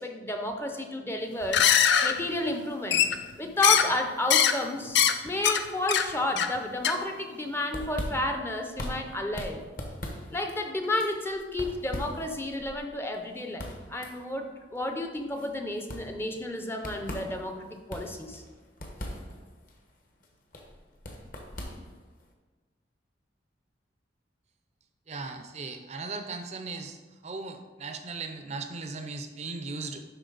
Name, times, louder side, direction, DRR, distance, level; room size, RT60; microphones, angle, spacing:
voice 1, 0.0-1.7 2.0-3.1 3.4-9.6 10.3-18.4, left 1 dB, 15° left, 4 dB, 0.6 m, -31 dB
sound 1, 1.4-2.1 2.9-3.3 3.6-3.9 4.3-4.5 4.9-5.1 5.4-5.6 5.9-6.0 6.4-6.6 6.8-6.9, left 8 dB, 65° left, 0.5 m, -21 dB
sound 2, 7.5-22.3, equal, 50° left, 1.1 m, -41 dB
voice 2, 25.1-27.0 27.2-30.0, right 3 dB, 35° right, 7 dB, 0.5 m, -37 dB
11.5 x 4.1 x 3.9 m, 1.3 s
head